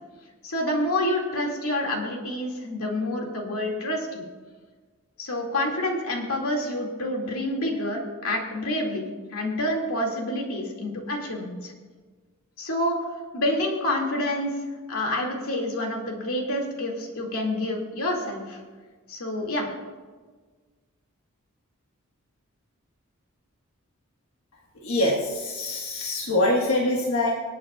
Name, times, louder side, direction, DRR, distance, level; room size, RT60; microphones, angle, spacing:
voice 1, 0.4-4.2 5.2-11.7 12.6-13.0 13.3-14.5 14.9-18.6 19.1-19.7, left 1 dB, 90° left, 0 dB, 2.3 m, -28 dB
voice 2, 24.8-27.3, left 1 dB, 70° left, -3 dB, 1.5 m, -24 dB
26.0 x 8.7 x 2.4 m, 1.4 s
head